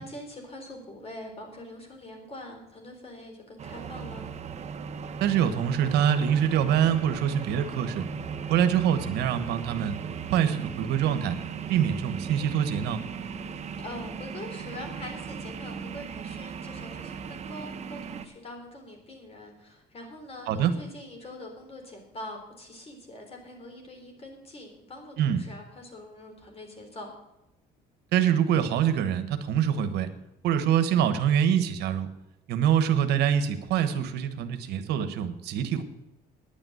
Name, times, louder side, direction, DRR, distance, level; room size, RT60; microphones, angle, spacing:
voice 1, 0.0-4.3 13.8-27.1, left 1 dB, 35° left, 3 dB, 3.9 m, -43 dB
sound 1, 3.6-18.3, right 6 dB, 40° right, 1.0 m, -37 dB
voice 2, 5.2-8.0 8.5-10.0 10.3-11.4 11.7-13.0 20.5-20.7 25.2-25.4 28.1-30.1 30.4-32.1 32.5-35.8, right 9 dB, 80° right, 10 dB, 1.2 m, -25 dB
10.0 x 9.0 x 7.8 m, 0.93 s
cardioid pair, 110°, 17 cm